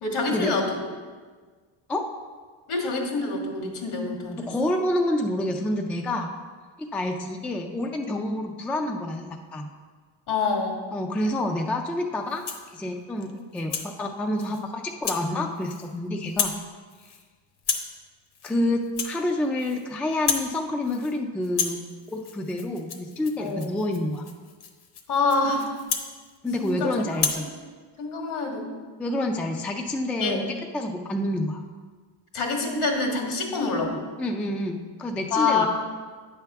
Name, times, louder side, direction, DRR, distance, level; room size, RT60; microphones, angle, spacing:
voice 1, 0.0-0.8 2.7-4.7 10.3-10.8 16.2-16.3 23.4-23.7 25.1-25.7 26.6-26.9 27.3-27.4 28.0-28.7 30.2-30.4 32.3-34.0 35.3-35.7, left 3 dB, 75° left, 0 dB, 1.9 m, -26 dB
voice 2, 4.5-6.3 6.8-9.7 10.9-12.4 12.7-16.6 18.4-21.8 22.1-24.2 26.4-27.5 29.0-31.6 34.2-35.6, left 1 dB, 5° left, 3 dB, 0.3 m, -28 dB
Rattle (instrument), 12.3-12.7 13.2-13.9 14.4-14.6 15.0-15.3 15.6-16.0 16.2-16.6 16.9-17.2 17.6-18.0 18.3-18.6 18.8-19.8 20.1-20.5 20.8-21.2 21.4-26.8 27.1-27.5, left 6 dB, 50° left, 0.9 m, -32 dB
9.0 x 3.5 x 6.7 m, 1.5 s
cardioid pair, 130°, 50 cm